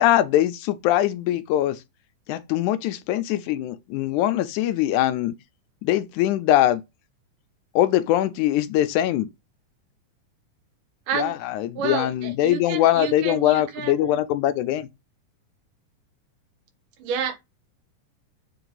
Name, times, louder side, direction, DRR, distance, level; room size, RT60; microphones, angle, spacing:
voice 1, 0.0-1.8 2.3-5.3 5.8-6.8 7.8-9.3 11.1-14.9, left 13 dB, 80° left, 2.0 m, -22 dB
voice 2, 11.8-14.2 17.0-17.4, right 7 dB, 85° right, 2.9 m, -30 dB
7.1 x 3.4 x 3.9 m
omnidirectional pair, 3.6 m